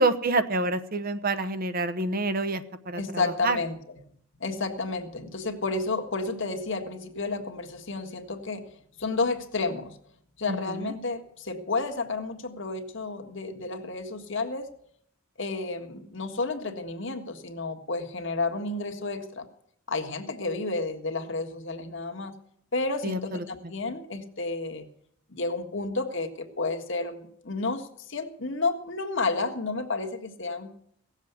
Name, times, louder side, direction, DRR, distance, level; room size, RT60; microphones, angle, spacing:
voice 1, 0.0-3.6 10.5-10.9 23.0-23.7, right 2 dB, 45° right, 11 dB, 0.9 m, -28 dB
voice 2, 3.0-3.8 4.4-8.7 9.0-10.0 10.4-14.7 15.4-19.5 19.9-22.3 22.7-24.9 25.3-30.7, left 3 dB, 60° left, 5 dB, 1.6 m, -31 dB
17.5 x 7.4 x 8.2 m, 0.69 s
head